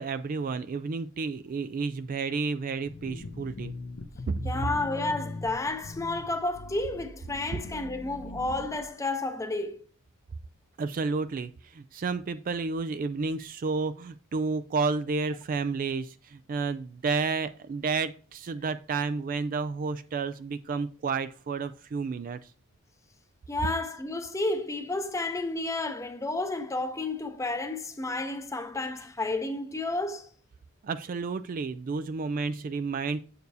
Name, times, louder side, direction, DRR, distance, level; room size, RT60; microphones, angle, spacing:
voice 1, 0.0-3.7 4.3-4.4 10.8-22.4 30.8-33.2, right 4 dB, 40° right, 0.3 m, -31 dB
sound 1, 2.9-8.9, left 2 dB, 50° left, 0.7 m, -41 dB
voice 2, 4.4-9.8 23.5-30.3, left 2 dB, 15° left, 0.7 m, -31 dB
7.9 x 6.7 x 2.7 m
head